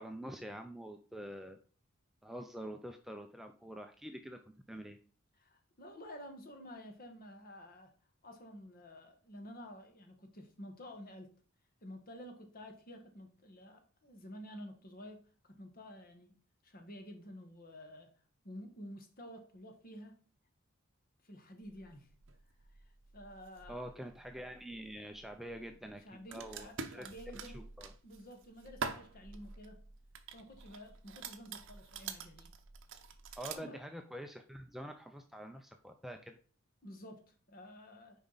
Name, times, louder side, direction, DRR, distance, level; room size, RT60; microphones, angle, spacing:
voice 1, 0.0-1.6 2.2-4.4 4.7-5.0 23.7-27.1 27.3-27.9 33.4-36.4, equal, ahead, 5 dB, 0.4 m, -46 dB
voice 2, 5.4-7.9 8.2-11.3 11.8-16.3 16.6-18.1 18.4-20.2 21.2-22.1 23.1-23.8 26.0-27.7 28.0-29.8 30.3-32.5 33.5-33.8 36.8-38.2, equal, 45° left, 5 dB, 1.4 m, -51 dB
sound 1, 21.6-33.6, right 5 dB, 60° right, 0.8 m, -47 dB
6.8 x 4.9 x 4.0 m, 0.42 s
head